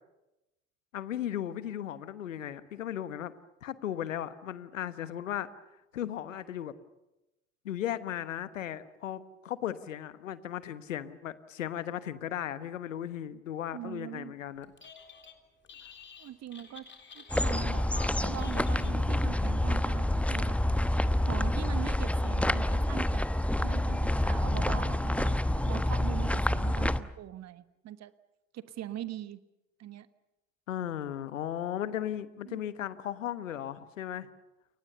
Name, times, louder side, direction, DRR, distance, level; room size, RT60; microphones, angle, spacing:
voice 1, 0.9-3.3 3.6-5.5 5.9-6.7 7.6-14.7 30.7-34.3, left 11 dB, 75° left, 15 dB, 1.3 m, -36 dB
voice 2, 13.7-14.3 16.2-16.9 17.1-20.9 21.2-23.2 23.6-28.1 28.5-29.4 29.8-30.1 32.4-32.6, right 12 dB, 45° right, 14 dB, 1.4 m, -42 dB
Telephone, 14.6-15.4 15.7-19.4, left 6 dB, 30° left, 3.7 m, -49 dB
sound 1, 17.3-27.0, left 1 dB, 5° left, 1.0 m, -28 dB
29.5 x 23.0 x 7.0 m, 0.95 s
figure-of-eight pair, 60°, 39 cm